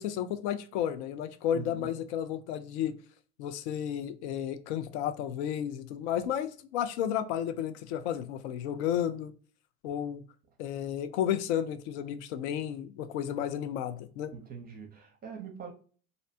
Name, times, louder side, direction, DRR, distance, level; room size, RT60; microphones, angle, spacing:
voice 1, 0.0-3.0 3.4-9.3 9.8-10.2 10.6-14.3, left 10 dB, 70° left, 0.5 m, -32 dB
voice 2, 1.5-2.0 14.3-15.7, right 6 dB, 25° right, 0.6 m, -43 dB
2.6 x 2.1 x 2.6 m
hypercardioid pair, 100°, 36 cm